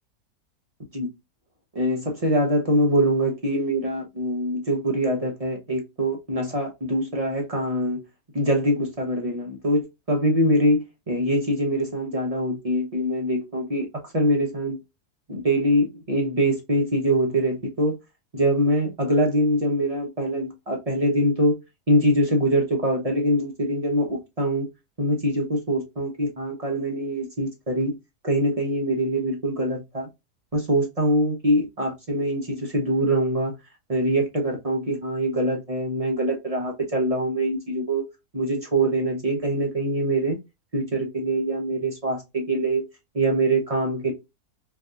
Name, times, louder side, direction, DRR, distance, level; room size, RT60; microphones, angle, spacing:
voice 1, 1.7-8.0 8.3-14.8 15.3-17.9 18.3-21.6 21.9-24.7 25.0-28.0 28.2-30.1 30.5-33.5 33.9-38.1 38.3-40.4 40.7-42.8 43.1-44.1, right 1 dB, 30° right, 0.7 m, -24 dB
3.3 x 2.6 x 2.4 m
omnidirectional pair, 1.6 m